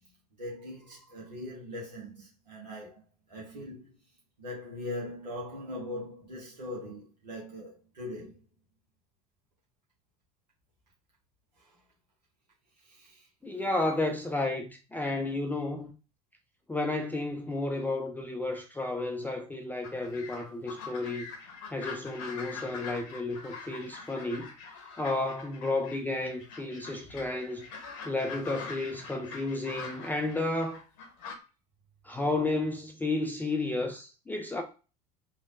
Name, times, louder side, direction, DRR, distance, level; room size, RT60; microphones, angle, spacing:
voice 1, 0.4-3.0 3.3-3.9 4.4-8.4 11.6-11.8 12.8-13.3 27.1-27.2, left 1 dB, 80° right, 1.0 m, -41 dB
voice 2, 13.4-15.9 16.7-21.3 21.7-24.5 25.0-27.7 28.0-30.8 32.0-34.6, left 2 dB, 10° left, 0.4 m, -32 dB
sound 1, 19.8-26.0 26.2-31.3, left 4 dB, 55° left, 0.8 m, -44 dB
3.3 x 2.3 x 2.5 m
figure-of-eight pair, 70°, 21 cm